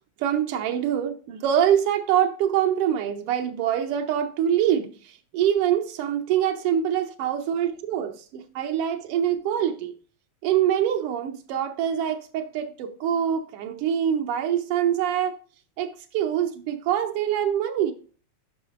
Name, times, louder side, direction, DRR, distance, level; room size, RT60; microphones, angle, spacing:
voice 1, 0.2-9.9 10.4-15.4 15.8-17.9, right 10 dB, 90° right, 1.3 m, -24 dB
9.9 x 5.8 x 2.4 m
omnidirectional pair, 3.3 m